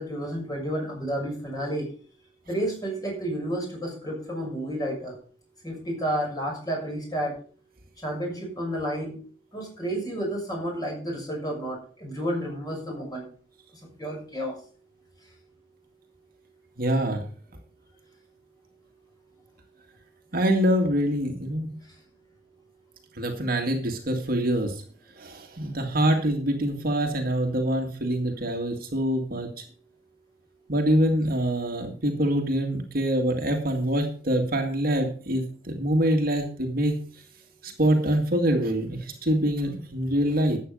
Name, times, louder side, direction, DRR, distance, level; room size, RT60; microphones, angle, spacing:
voice 1, 0.0-1.9 2.5-5.1 5.6-7.3 8.0-9.1 9.5-13.3 14.0-14.6, right 1 dB, 20° left, -1 dB, 6.6 m, -31 dB
voice 2, 16.8-17.2 20.3-21.7 23.2-24.7 25.2-29.5 30.7-37.0 37.6-40.6, right 1 dB, 50° right, 3 dB, 1.9 m, -25 dB
12.5 x 8.5 x 5.3 m, 0.42 s
head